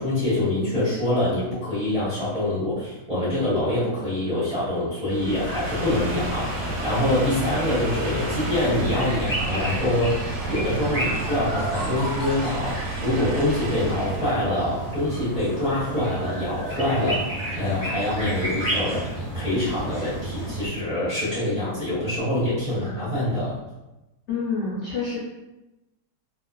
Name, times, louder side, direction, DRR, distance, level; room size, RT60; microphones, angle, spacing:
voice 1, 0.0-19.1 19.3-23.6, left 1 dB, 35° right, -12 dB, 0.7 m, -25 dB
sound 1, 5.1-14.4, right 1 dB, 65° right, 0.8 m, -32 dB
sound 2, 5.7-20.7, right 1 dB, 5° left, 0.8 m, -31 dB
voice 2, 24.3-25.2, left 4 dB, 65° left, -9 dB, 0.7 m, -27 dB
2.5 x 2.4 x 2.2 m, 0.99 s
omnidirectional pair, 1.8 m